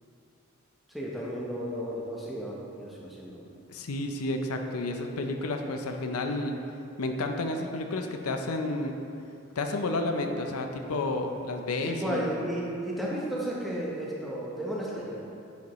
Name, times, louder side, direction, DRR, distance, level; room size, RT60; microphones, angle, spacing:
voice 1, 0.9-3.4 11.8-15.2, equal, ahead, -5 dB, 0.9 m, -33 dB
voice 2, 3.7-6.6 7.0-9.0 9.6-12.3, left 2 dB, 90° left, 4 dB, 0.6 m, -31 dB
10.5 x 5.1 x 3.1 m, 2.6 s
head